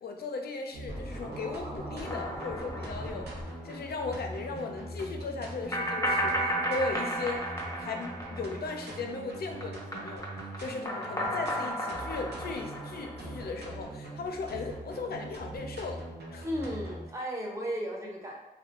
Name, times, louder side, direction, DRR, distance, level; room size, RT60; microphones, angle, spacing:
voice 1, 0.0-3.3 3.6-7.5 7.8-10.3 10.6-16.1 16.3-16.5, left 3 dB, 70° left, 3 dB, 0.4 m, -37 dB
sound 1, 0.7-17.1, right 1 dB, 90° right, 0.5 m, -42 dB
Scratching (performance technique), 0.9-3.4, right 1 dB, 50° right, 0.9 m, -41 dB
sound 2, 2.0-3.7 4.0-4.1 5.7-9.2 9.4-13.7, right 1 dB, 20° left, 0.5 m, -34 dB
voice 2, 16.4-18.3, equal, 20° right, -2 dB, 0.7 m, -34 dB
2.4 x 2.2 x 2.8 m, 0.94 s
wide cardioid pair, 75°, 17 cm